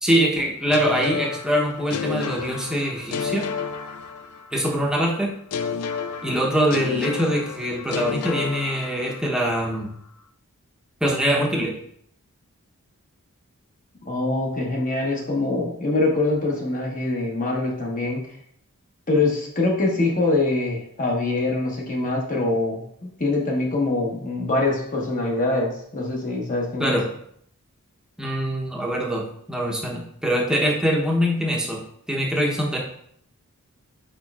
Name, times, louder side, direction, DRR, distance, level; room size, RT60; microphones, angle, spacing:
voice 1, 0.0-3.4 4.5-5.3 6.2-9.9 11.0-11.7 26.8-27.0 28.2-31.8 32.1-32.8, equal, 5° right, -2 dB, 0.7 m, -23 dB
sound 1, 0.7-4.7 5.5-9.4, left 6 dB, 85° left, 0.4 m, -30 dB
voice 2, 14.1-18.2 19.1-27.0, left 2 dB, 40° left, -1 dB, 1.0 m, -24 dB
5.1 x 4.4 x 2.3 m, 0.68 s
head